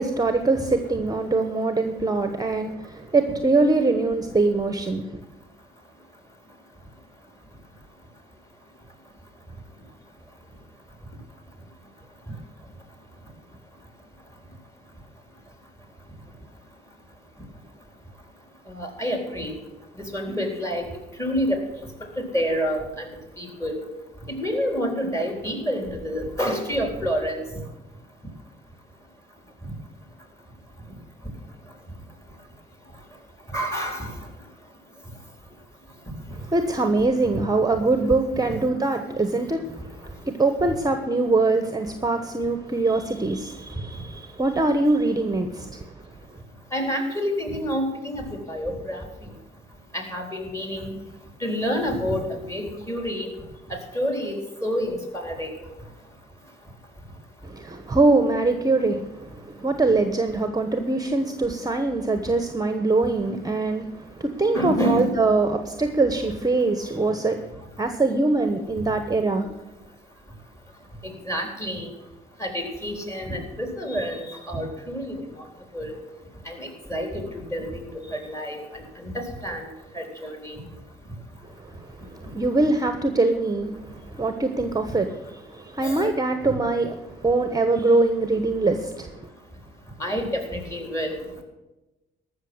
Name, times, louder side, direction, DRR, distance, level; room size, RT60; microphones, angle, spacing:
voice 1, 0.0-5.2 36.5-45.8 57.4-67.5 67.8-69.5 81.6-89.3, right 3 dB, 20° right, 8 dB, 1.1 m, -23 dB
voice 2, 18.7-19.5 20.0-20.9 21.2-21.6 22.2-23.1 23.4-23.8 24.3-27.4 33.5-34.2 37.3-37.4 46.7-49.0 49.9-51.0 51.4-53.3 53.7-55.5 63.2-63.4 64.5-65.1 71.0-71.9 72.4-75.2 75.7-76.0 76.5-79.1 79.4-79.7 79.9-80.6 85.8-86.1 90.0-91.2, equal, 15° left, 3 dB, 3.9 m, -28 dB
14.0 x 6.5 x 9.6 m, 1.0 s
cardioid pair, 90°, 20 cm